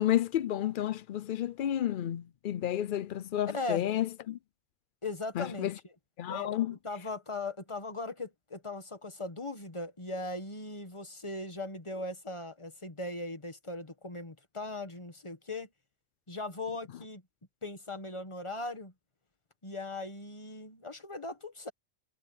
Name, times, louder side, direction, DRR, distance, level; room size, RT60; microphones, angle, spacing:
voice 1, 0.0-4.4 5.4-5.7 6.2-6.7, left 12 dB, 80° left, 0.4 m, -31 dB
voice 2, 3.5-3.8 5.0-5.7 6.3-15.7 16.3-17.2 17.6-18.9 19.6-21.7, left 2 dB, 20° left, 1.6 m, -39 dB
omnidirectional pair, 1.5 m